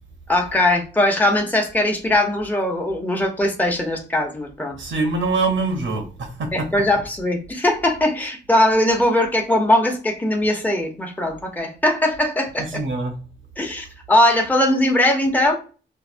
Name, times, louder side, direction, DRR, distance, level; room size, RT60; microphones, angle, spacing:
voice 1, 0.3-4.8 6.5-12.8 13.6-15.6, left 1 dB, 10° left, 2 dB, 0.8 m, -20 dB
voice 2, 4.7-6.5 12.7-13.1, right 3 dB, 90° right, 3 dB, 0.9 m, -24 dB
4.6 x 2.6 x 2.5 m, 0.37 s
wide cardioid pair, 85°, 19 cm